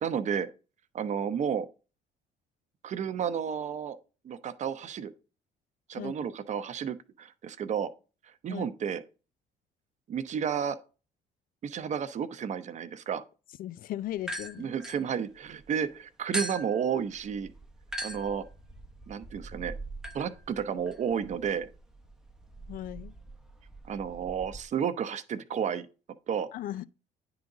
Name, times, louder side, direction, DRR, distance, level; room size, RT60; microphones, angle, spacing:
voice 1, 0.0-0.5 0.9-1.7 2.8-4.0 4.2-5.1 5.9-7.9 8.4-9.0 10.1-10.8 11.6-13.2 14.6-17.5 18.0-18.5 19.1-19.7 20.1-21.7 23.9-25.9 26.3-26.5, right 7 dB, 45° right, 0.7 m, -32 dB
voice 2, 13.6-14.7 22.7-23.1 26.5-26.8, left 13 dB, 55° left, 0.4 m, -37 dB
sound 1, 14.2-15.7 16.3-24.6, right 1 dB, 5° right, 0.7 m, -41 dB
9.5 x 3.9 x 4.8 m
cardioid pair, 110°, 17 cm